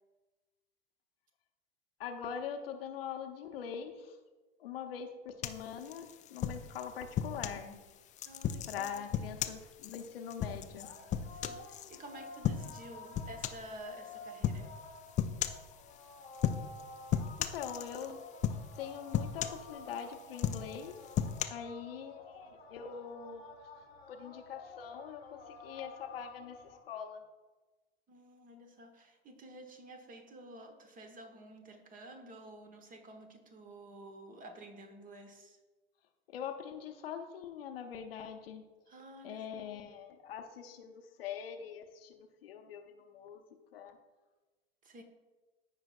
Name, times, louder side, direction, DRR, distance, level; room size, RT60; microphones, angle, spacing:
voice 1, 2.0-4.2 4.6-7.8 8.7-10.9 17.4-18.2 18.8-21.0 21.5-23.6 24.1-26.6 26.8-27.2 36.3-38.6 39.2-43.4 43.7-44.0, left 7 dB, 70° left, 5 dB, 0.9 m, -43 dB
sound 1, 5.4-7.6 8.2-12.0 12.4-12.8 13.1-13.7 14.4-14.7 15.2-15.7 16.3-16.8 17.1-18.1 18.4-18.8 19.1-20.0 20.3-21.4, left 9 dB, 25° left, 0.4 m, -35 dB
sound 2, 8.2-26.8, left 3 dB, 85° left, 1.3 m, -52 dB
voice 2, 8.2-9.2 11.3-14.8 28.1-35.6 38.9-39.8 44.8-45.0, right 1 dB, 25° right, 5 dB, 1.2 m, -51 dB
14.5 x 4.9 x 2.4 m, 1.2 s
figure-of-eight pair, 85°, 31 cm